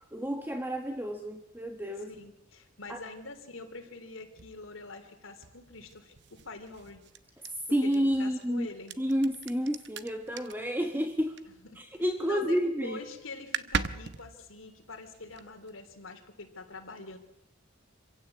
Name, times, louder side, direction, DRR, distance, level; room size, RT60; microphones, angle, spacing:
voice 1, 0.1-2.1 2.9-3.0 7.7-8.7 9.0-11.4 11.8-13.0, equal, 10° right, 5 dB, 1.2 m, -30 dB
voice 2, 2.1-7.0 7.8-9.0 11.6-11.8 12.3-17.2, left 3 dB, 75° left, 5 dB, 3.4 m, -45 dB
sound 1, 4.4-12.0 12.3-12.8 13.1-13.2 13.3-15.7, right 6 dB, 60° right, 0.9 m, -40 dB
26.0 x 16.0 x 8.6 m, 0.86 s
head